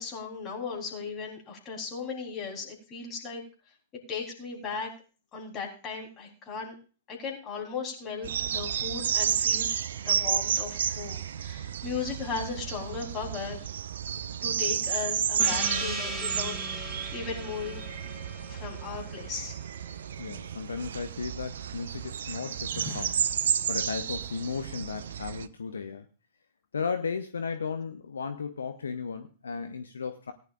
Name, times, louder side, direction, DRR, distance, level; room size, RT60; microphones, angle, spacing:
voice 1, 0.0-3.4 4.1-4.9 5.3-6.8 7.1-9.7 10.0-13.7 14.4-16.5 16.8-17.8 18.5-19.6 22.8-23.0, left 5 dB, 25° left, 0 dB, 3.7 m, -37 dB
sound 1, 8.2-25.5, right 8 dB, 60° right, 0.5 m, -31 dB
Gong, 15.4-20.5, right 1 dB, 5° right, 2.6 m, -38 dB
voice 2, 20.2-23.1 23.7-26.1 26.7-30.3, left 5 dB, 70° left, 8 dB, 0.9 m, -35 dB
18.5 x 10.5 x 2.5 m, 0.36 s
figure-of-eight pair, 105°, 0 cm